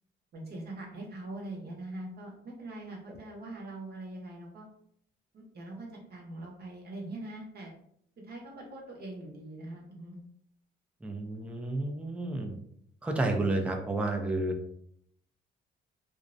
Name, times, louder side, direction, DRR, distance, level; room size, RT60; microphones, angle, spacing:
voice 1, 0.3-4.7 5.3-7.7 8.2-10.2, right 2 dB, 55° right, -1 dB, 0.7 m, -42 dB
voice 2, 11.0-12.6 13.0-14.5, right 2 dB, 5° right, 2 dB, 0.4 m, -31 dB
2.4 x 2.0 x 2.5 m, 0.68 s
cardioid pair, 90°, 20 cm